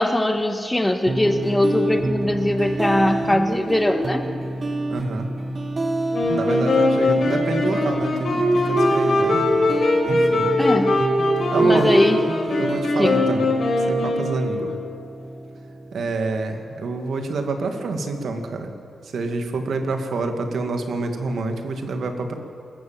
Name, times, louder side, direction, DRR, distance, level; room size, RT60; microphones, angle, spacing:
voice 1, 0.0-4.3 10.6-10.9 11.6-12.2 13.0-13.3, left 1 dB, 10° left, 6 dB, 1.5 m, -21 dB
sound 1, 1.1-16.1, right 2 dB, 40° right, 1.4 m, -28 dB
voice 2, 4.9-5.3 6.3-10.5 11.5-12.0 12.6-13.5 13.9-14.7 15.9-18.7 19.1-22.3, right 3 dB, 75° right, 5 dB, 2.1 m, -27 dB
Wind instrument woodwind instrument, 6.1-14.9, left 2 dB, 65° left, 5.7 m, -21 dB
27.0 x 14.5 x 7.5 m, 2.7 s
cardioid pair, 105°, 0 cm